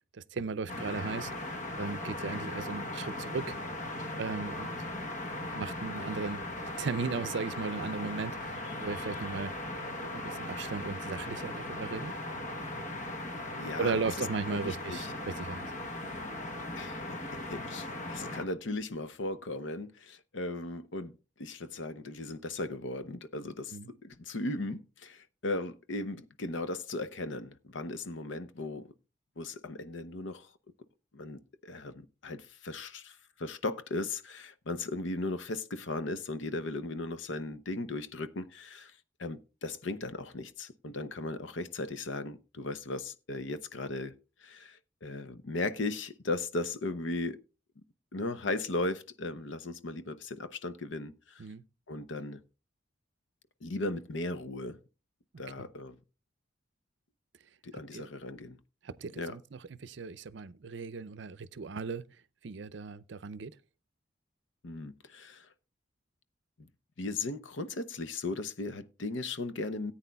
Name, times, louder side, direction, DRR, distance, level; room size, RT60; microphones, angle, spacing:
voice 1, 0.1-1.3 1.8-3.6 4.1-4.7 5.5-6.4 6.8-9.5 10.1-12.1 13.8-15.7 23.7-23.9 51.4-51.6 55.6-55.7 57.9-58.1 58.8-62.0 62.4-63.5, right 4 dB, 65° right, 0.5 m, -36 dB
sound 1, 0.7-18.4, left 1 dB, 40° left, 1.0 m, -38 dB
voice 2, 13.6-15.1 15.8-16.3 16.7-21.1 21.4-28.9 29.4-30.5 31.1-38.9 39.2-44.1 44.4-47.4 48.1-51.4 51.9-52.4 53.6-54.8 55.4-56.0 57.6-58.6 59.2-59.4 64.6-65.5 66.6-66.7 67.0-69.9, left 2 dB, 70° left, 0.7 m, -37 dB
18.0 x 8.8 x 2.3 m
head